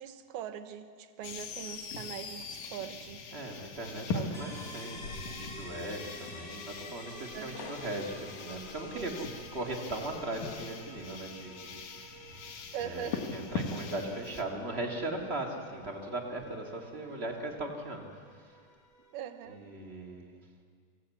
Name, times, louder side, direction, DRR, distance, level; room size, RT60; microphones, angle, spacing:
voice 1, 0.0-3.2 4.1-4.4 7.3-7.8 8.9-9.1 12.7-13.2 19.1-19.7, right 9 dB, 80° right, 9 dB, 2.8 m, -41 dB
sound 1, 1.2-14.4, left 4 dB, 60° left, 2.7 m, -41 dB
voice 2, 3.3-9.3 9.5-12.5 12.8-18.7 19.5-20.4, right 2 dB, 35° right, 1 dB, 0.9 m, -39 dB
sound 2, 4.3-19.9, left 1 dB, 75° left, 0.5 m, -51 dB
26.0 x 16.5 x 8.4 m, 2.1 s
omnidirectional pair, 4.5 m